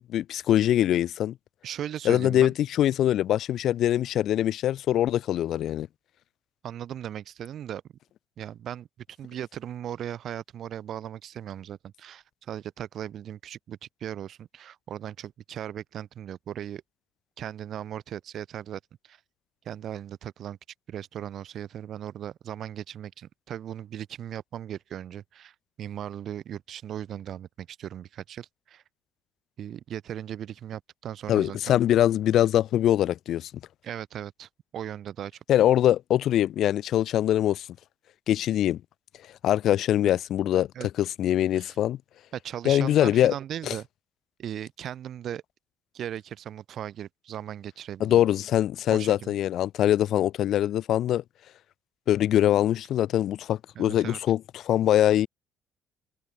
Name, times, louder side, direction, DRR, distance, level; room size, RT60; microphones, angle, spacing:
voice 1, 0.0-1.3 2.1-5.9 31.3-33.5 35.5-37.7 38.3-38.8 39.4-40.7 41.0-42.0 42.7-43.3 43.7-43.8 48.0-51.2 52.1-55.3, left 12 dB, 65° left, 0.3 m, -23 dB
voice 2, 1.6-2.5 6.6-7.8 8.4-8.9 9.2-16.8 17.4-19.2 19.6-20.6 20.9-28.8 29.6-31.8 33.8-35.3 40.7-40.9 41.5-41.8 42.3-43.9 44.4-45.4 45.9-48.2 48.9-49.4 53.8-54.2, right 10 dB, 55° right, 0.6 m, -38 dB
cardioid pair, 105°, 0 cm